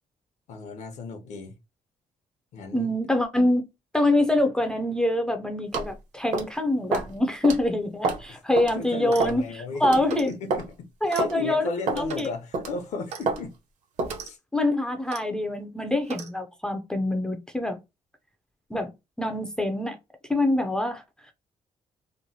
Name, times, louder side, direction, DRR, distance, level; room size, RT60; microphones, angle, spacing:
voice 1, 0.5-1.5 2.5-2.9 8.3-8.4 8.7-10.7 11.0-13.5 14.2-14.4, left 3 dB, 70° left, 0.7 m, -34 dB
voice 2, 2.7-3.6 3.9-9.4 9.8-10.3 11.0-11.7 12.0-12.3 14.5-17.8 18.7-18.9 19.2-20.0 20.3-21.3, left 1 dB, 5° left, 0.4 m, -25 dB
sound 1, 5.7-5.9 6.3-6.5 6.9-7.1 7.4-7.6 8.0-8.3 8.6-8.7 9.2-9.4 9.8-10.0 10.5-10.7 11.2-11.3 11.9-12.1 12.5-12.8 13.3-13.4 14.0-14.2, right 3 dB, 75° right, 1.0 m, -27 dB
Clock, 9.0-9.4 10.1-10.4 11.1-11.3 12.1-12.3 13.1-13.3 14.0-14.3 15.1-15.3 16.1-16.3, right 6 dB, 60° right, 0.5 m, -38 dB
3.0 x 2.2 x 2.6 m
cardioid pair, 170°, 13 cm